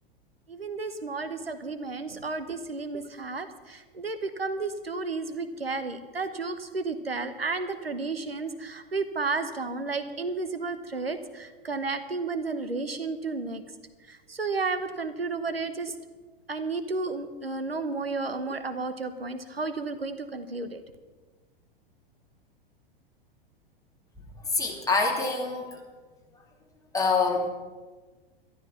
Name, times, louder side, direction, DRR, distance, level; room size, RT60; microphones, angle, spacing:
voice 1, 0.5-13.6 14.1-15.9 16.5-20.8, right 3 dB, 85° right, 9 dB, 1.1 m, -32 dB
voice 2, 24.2-25.8 26.9-27.5, left 4 dB, 10° left, 0 dB, 3.0 m, -26 dB
13.0 x 12.5 x 6.1 m, 1.3 s
figure-of-eight pair, 95°, 29 cm